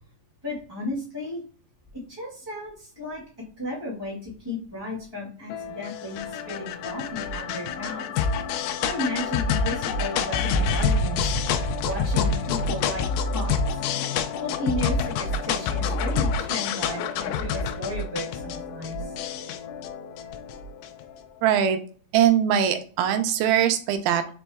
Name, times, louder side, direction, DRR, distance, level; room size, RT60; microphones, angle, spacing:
voice 1, 0.4-1.4 2.1-3.2 3.6-8.1 8.8-13.8 14.4-19.1, left 1 dB, 20° right, -7 dB, 0.7 m, -34 dB
sound 1, 5.5-21.0, left 5 dB, 80° left, 2.0 m, -27 dB
voice 2, 21.4-21.8 22.1-24.4, right 9 dB, 85° right, 8 dB, 2.6 m, -21 dB
5.2 x 4.5 x 2.3 m, 0.43 s
omnidirectional pair, 4.3 m